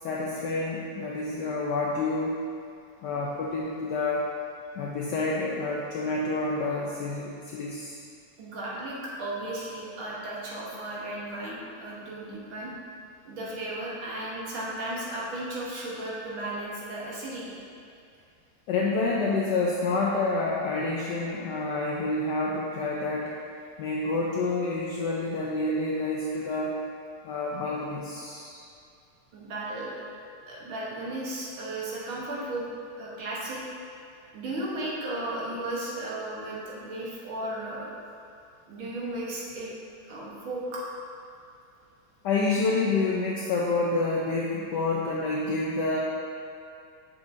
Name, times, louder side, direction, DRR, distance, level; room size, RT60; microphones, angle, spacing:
voice 1, 0.0-2.3 3.0-4.3 4.7-8.0 18.7-23.3 23.8-26.8 27.2-28.6 42.2-46.0, left 3 dB, 80° left, -3 dB, 1.0 m, -28 dB
voice 2, 8.4-12.7 13.3-17.6 29.3-30.0 30.5-32.7 33.0-33.6 34.3-37.9 38.7-39.7 40.1-40.8, right 1 dB, 70° right, -5 dB, 1.9 m, -35 dB
7.1 x 5.9 x 2.6 m, 2.4 s
omnidirectional pair, 2.4 m